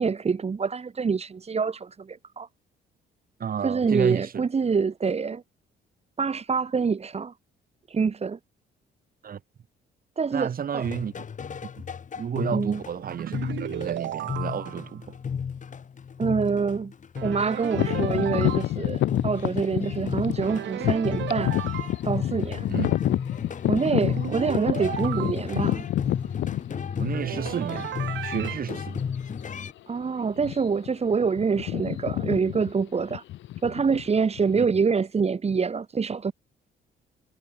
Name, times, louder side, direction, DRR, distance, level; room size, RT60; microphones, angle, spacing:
voice 1, 0.0-2.5 3.6-5.4 6.2-7.3 7.9-8.4 10.2-10.9 12.5-12.8 16.2-16.9 17.2-21.6 22.0-22.7 23.6-25.8 29.9-33.2 33.6-36.3, right 5 dB, 35° right, 4.0 m, -26 dB
voice 2, 3.4-4.4 9.2-9.4 10.3-11.1 12.2-15.1 22.7-23.0 27.0-27.9 28.2-29.0 34.5-34.7, right 8 dB, 50° right, 7.0 m, -31 dB
sound 1, 10.8-29.7, left 6 dB, 40° left, 3.1 m, -34 dB
sound 2, 13.0-14.9 17.2-18.7 20.4-22.0 23.8-25.3 27.1-28.6, right 12 dB, 75° right, 6.5 m, -35 dB
sound 3, 17.7-27.5 28.2-28.3 28.9-29.2 29.4-29.7 30.3-30.9 31.1-34.5, left 14 dB, 80° left, 7.8 m, -28 dB
cardioid pair, 105°, 19 cm